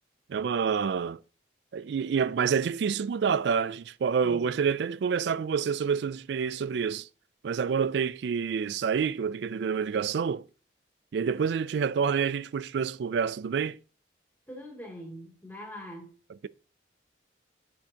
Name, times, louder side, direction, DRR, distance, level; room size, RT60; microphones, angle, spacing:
voice 1, 0.3-1.2 1.7-7.1 7.4-10.4 11.1-13.8, right 6 dB, 65° right, 0.3 m, -28 dB
voice 2, 14.5-16.1, equal, 10° left, 2.7 m, -43 dB
9.7 x 6.2 x 2.9 m
head